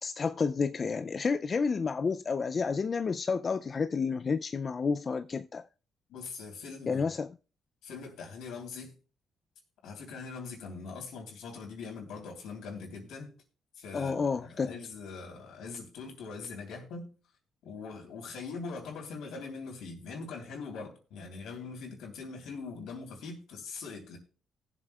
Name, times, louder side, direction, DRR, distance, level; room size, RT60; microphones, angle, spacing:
voice 1, 0.0-5.6 6.9-7.3 13.9-14.7, left 5 dB, 40° left, 0.3 m, -30 dB
voice 2, 6.1-7.0 7.8-8.9 9.8-13.3 13.8-17.1 17.6-24.2, left 4 dB, 80° left, 3.3 m, -42 dB
19.5 x 7.4 x 2.3 m
cardioid pair, 90°, 0 cm